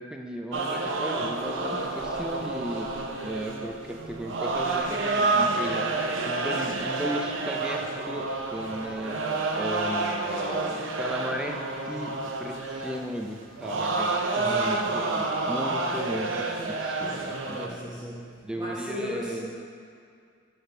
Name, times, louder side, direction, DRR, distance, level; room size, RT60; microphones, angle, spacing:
voice 1, 0.0-2.9 3.2-5.9 6.2-9.2 9.6-11.6 11.9-14.2 14.4-17.8 18.4-19.5, equal, 5° right, 2 dB, 0.4 m, -36 dB
sound 1, 0.5-17.7, right 3 dB, 85° right, 0.6 m, -29 dB
voice 2, 14.3-14.9 17.4-19.6, equal, 20° right, -9 dB, 1.0 m, -37 dB
9.3 x 3.5 x 4.5 m, 2.3 s
head